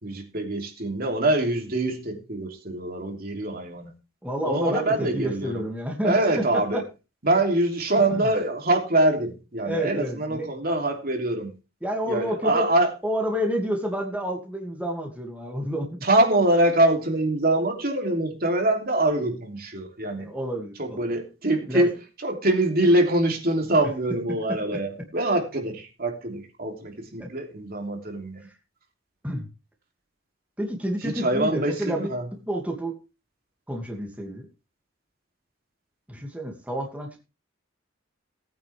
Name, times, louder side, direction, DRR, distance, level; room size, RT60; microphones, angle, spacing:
voice 1, 0.0-3.9 4.4-5.6 6.0-6.8 7.2-11.5 12.1-12.9 16.0-20.3 20.8-21.9 22.2-28.5 31.0-32.3, right 1 dB, 50° right, 3.2 m, -24 dB
voice 2, 4.2-6.1 6.5-6.8 8.1-8.3 9.6-10.5 11.8-12.7 13.0-16.0 20.2-21.0 21.7-21.9 27.2-27.3 28.4-28.5 29.2-29.5 30.6-32.1 32.5-32.9 33.7-34.5 36.1-37.2, equal, 5° right, 2.5 m, -29 dB
18.5 x 9.4 x 3.5 m
head